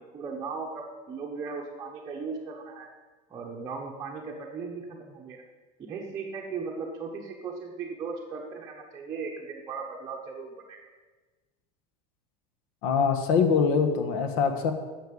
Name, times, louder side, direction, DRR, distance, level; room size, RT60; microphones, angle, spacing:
voice 1, 0.0-2.9 3.3-5.4 5.8-10.8, right 4 dB, 15° right, -2 dB, 0.9 m, -37 dB
voice 2, 12.8-14.7, left 6 dB, 65° left, 6 dB, 1.5 m, -23 dB
10.0 x 6.7 x 7.4 m, 1.3 s
cardioid pair, 180°, 20 cm